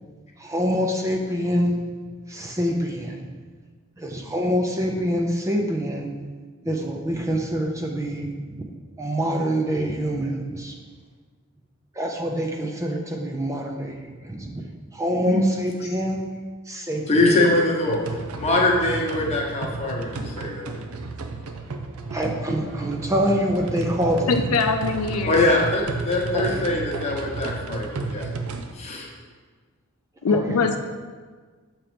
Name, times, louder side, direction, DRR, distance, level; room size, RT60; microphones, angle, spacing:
voice 1, 0.4-1.7 2.3-3.3 4.0-6.1 6.6-8.6 9.0-10.8 12.0-14.6 14.9-16.2 16.7-17.5 22.1-24.4 26.3-26.6 30.3-30.7, equal, 15° right, 1 dB, 0.4 m, -26 dB
voice 2, 17.1-18.0 18.3-20.6 25.3-28.3 28.7-29.1, left 2 dB, 30° left, -1 dB, 0.9 m, -22 dB
sound 1, 17.9-28.7, right 3 dB, 75° right, 0.5 m, -33 dB
voice 3, 24.3-25.5 30.2-30.8, left 4 dB, 75° left, 6 dB, 0.4 m, -22 dB
7.2 x 3.0 x 5.0 m, 1.5 s
head